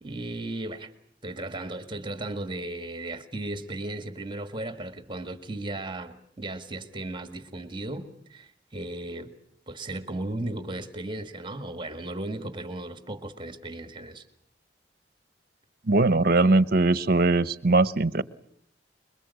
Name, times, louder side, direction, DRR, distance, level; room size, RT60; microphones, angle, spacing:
voice 1, 0.0-0.9 1.2-9.3 9.7-14.3, right 2 dB, 30° right, 9 dB, 1.8 m, -36 dB
voice 2, 15.9-18.2, right 2 dB, 60° right, 16 dB, 1.0 m, -21 dB
26.0 x 22.5 x 8.3 m, 0.66 s
head